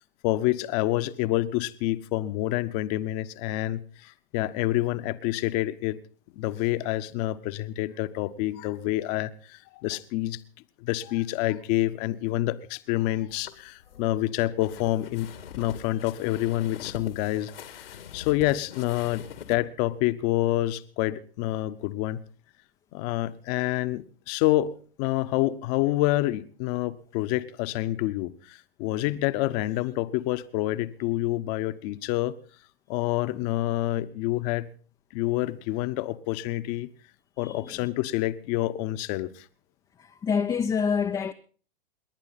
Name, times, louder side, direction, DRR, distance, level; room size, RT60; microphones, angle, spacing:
voice 1, 0.2-6.0 6.4-10.4 10.8-15.3 15.6-22.2 22.9-32.4 32.9-34.7 35.1-36.9 37.4-39.5, left 16 dB, 40° left, 1.2 m, -28 dB
sound 1, 13.3-19.6, left 8 dB, 70° left, 2.1 m, -43 dB
voice 2, 37.4-37.9 40.0-41.3, left 6 dB, 15° left, 0.6 m, -27 dB
29.0 x 11.0 x 4.2 m
figure-of-eight pair, 105°, 30 cm